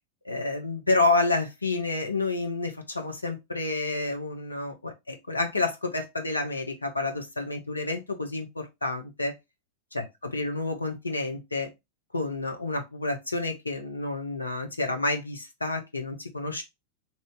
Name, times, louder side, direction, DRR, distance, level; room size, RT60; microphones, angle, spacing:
voice 1, 0.2-9.3 9.9-10.0 10.3-11.7 12.1-16.6, left 2 dB, 80° left, 0.8 m, -29 dB
2.7 x 2.6 x 3.4 m
figure-of-eight pair, 90°, 0 cm